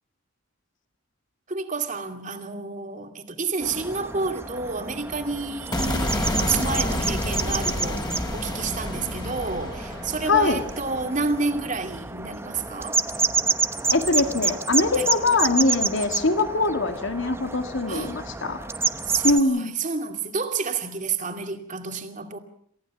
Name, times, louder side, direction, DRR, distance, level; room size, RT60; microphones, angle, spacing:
voice 1, 1.5-13.0 14.9-15.1 17.9-18.2 19.0-22.4, right 4 dB, 40° right, 2.4 m, -30 dB
sound 1, 3.6-19.4, right 3 dB, 10° right, 0.9 m, -29 dB
sound 2, 5.7-12.0, left 1 dB, 20° left, 3.4 m, -29 dB
voice 2, 10.2-10.6 13.9-18.6 19.2-19.7, left 3 dB, 70° left, 2.0 m, -22 dB
28.0 x 15.0 x 7.2 m
head